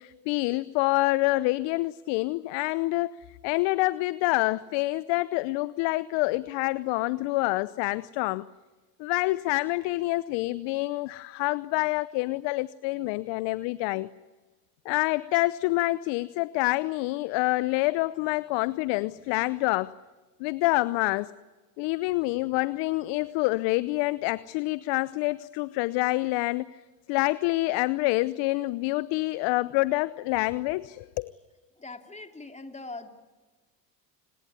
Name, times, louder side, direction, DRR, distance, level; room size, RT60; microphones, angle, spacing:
voice 1, 0.0-8.5 9.0-14.1 14.8-19.9 20.4-21.3 21.8-26.8 27.1-31.3, left 21 dB, 60° left, 17 dB, 0.9 m, -27 dB
voice 2, 31.8-33.1, left 2 dB, 15° left, 5 dB, 3.2 m, -41 dB
29.5 x 20.0 x 9.7 m, 1.3 s
hypercardioid pair, 80°, 50 cm